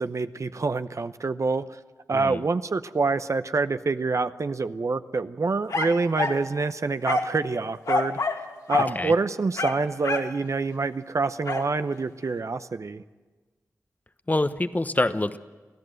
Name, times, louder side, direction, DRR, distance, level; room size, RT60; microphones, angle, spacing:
voice 1, 0.0-1.8 2.1-8.2 8.7-13.0, right 4 dB, 55° right, 11 dB, 0.7 m, -26 dB
sound 1, 5.7-6.4 7.0-7.4 7.9-8.4 8.7-8.9 9.5-10.3 11.5-11.7, left 3 dB, 75° left, 2.1 m, -26 dB
voice 2, 14.3-15.4, left 2 dB, 25° left, 11 dB, 1.0 m, -25 dB
24.5 x 15.0 x 7.8 m, 1.3 s
cardioid pair, 45°, 6 cm